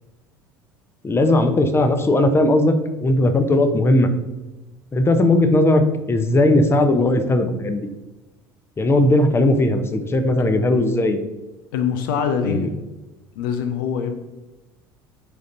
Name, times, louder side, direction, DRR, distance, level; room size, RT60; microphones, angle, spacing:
voice 1, 1.0-2.7 3.0-4.1 4.9-7.9 8.8-11.2 12.4-12.7, left 1 dB, 20° left, 8 dB, 0.8 m, -18 dB
voice 2, 11.7-12.7 13.4-14.2, left 6 dB, 70° left, 8 dB, 0.5 m, -23 dB
9.5 x 3.9 x 2.6 m, 1.1 s
figure-of-eight pair, 65°, 12 cm